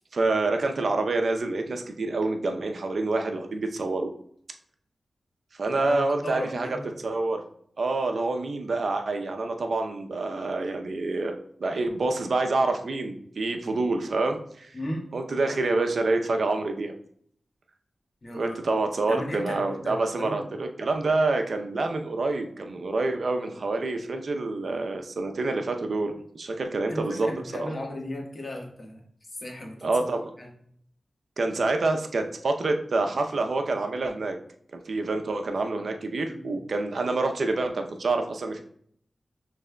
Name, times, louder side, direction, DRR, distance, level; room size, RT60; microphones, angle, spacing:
voice 1, 0.1-4.1 5.5-7.4 7.8-14.7 15.1-16.9 18.3-27.3 27.6-27.7 29.8-30.2 31.4-34.4 34.7-38.6, right 3 dB, 70° right, 5 dB, 0.6 m, -27 dB
voice 2, 6.2-6.9 14.7-15.1 18.2-18.6 19.1-20.5 26.9-29.0 29.4-30.1 30.4-30.5 36.3-36.5, left 1 dB, 45° left, 0 dB, 1.3 m, -35 dB
6.2 x 3.3 x 2.2 m, 0.64 s
cardioid pair, 55°, 0 cm